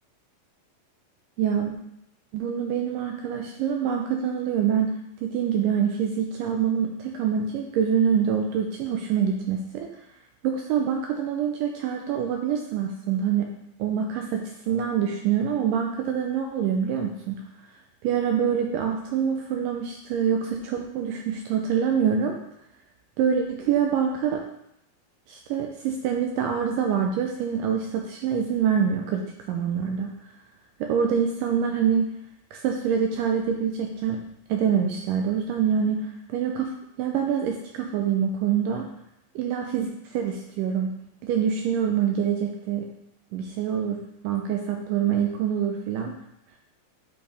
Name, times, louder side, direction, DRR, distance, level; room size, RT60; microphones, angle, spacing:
voice 1, 1.4-1.8 2.3-4.9 5.2-9.9 10.4-13.5 13.8-17.4 18.0-22.4 23.2-24.5 25.3-30.1 30.8-32.1 32.5-34.2 34.5-38.9 39.4-40.9 41.2-42.9 43.3-44.0 44.2-46.2, right 7 dB, 85° right, 3 dB, 1.9 m, -25 dB
8.3 x 4.4 x 3.3 m, 0.80 s
omnidirectional pair, 4.3 m